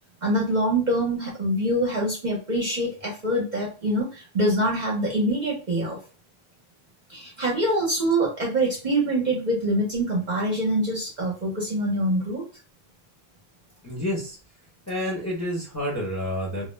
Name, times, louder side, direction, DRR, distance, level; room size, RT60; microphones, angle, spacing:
voice 1, 0.2-6.0 7.1-12.4, right 1 dB, 45° right, -2 dB, 0.7 m, -25 dB
voice 2, 13.8-14.4 14.9-16.7, equal, 15° left, -3 dB, 0.7 m, -29 dB
2.3 x 2.0 x 3.1 m, 0.34 s
omnidirectional pair, 1.2 m